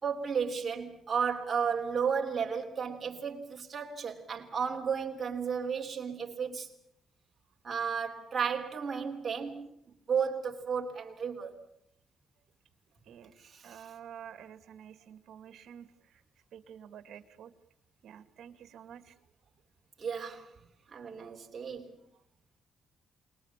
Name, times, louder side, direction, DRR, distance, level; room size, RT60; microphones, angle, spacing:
voice 1, 0.0-6.7 7.6-9.7 10.1-11.6 13.4-13.9 20.0-20.5 20.9-21.9, right 6 dB, 30° right, 3.4 m, -33 dB
voice 2, 13.1-16.2 16.5-17.5 18.0-19.2, right 9 dB, 65° right, 2.1 m, -50 dB
28.5 x 21.5 x 7.5 m
cardioid pair, 155°, 0 cm